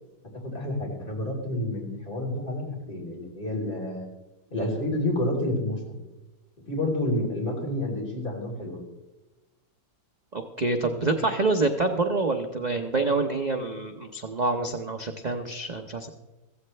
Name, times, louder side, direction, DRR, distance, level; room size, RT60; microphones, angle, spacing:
voice 1, 0.3-4.1 4.5-6.0 6.7-8.8, left 1 dB, 30° left, -3 dB, 3.8 m, -29 dB
voice 2, 10.3-16.1, right 3 dB, 40° right, 5 dB, 0.6 m, -27 dB
15.5 x 15.0 x 3.3 m, 1.1 s
omnidirectional pair, 1.8 m